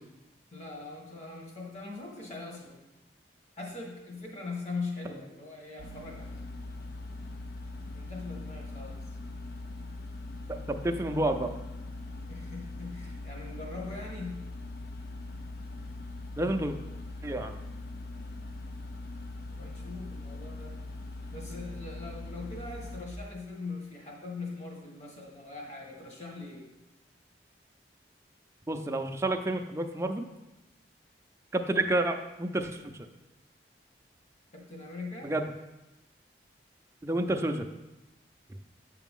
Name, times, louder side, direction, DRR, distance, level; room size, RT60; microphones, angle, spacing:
voice 1, 0.5-2.8 3.6-6.5 7.9-9.0 12.3-14.4 19.6-20.8 21.3-26.7 34.5-35.3, left 3 dB, 40° left, -1 dB, 1.6 m, -41 dB
sound 1, 5.8-23.0, left 2 dB, 60° left, 0.6 m, -41 dB
voice 2, 10.5-11.5 16.4-16.8 17.2-17.5 28.7-30.3 31.5-33.0 35.2-35.5 37.0-37.7, right 1 dB, 15° right, 4 dB, 0.4 m, -29 dB
8.1 x 5.9 x 3.6 m, 1.0 s
head